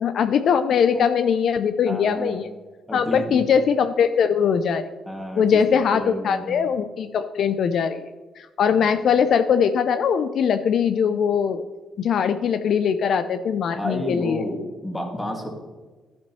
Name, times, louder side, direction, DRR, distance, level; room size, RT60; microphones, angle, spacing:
voice 1, 0.0-2.5 2.9-4.9 5.4-8.0 8.4-11.6 12.0-14.4, left 7 dB, 65° left, 10 dB, 0.4 m, -21 dB
voice 2, 1.9-2.4 2.9-3.4 5.1-6.5 8.8-9.0 13.7-15.5, equal, 15° left, 1 dB, 2.1 m, -31 dB
12.0 x 7.4 x 3.1 m, 1.3 s
cardioid pair, 90°, 0 cm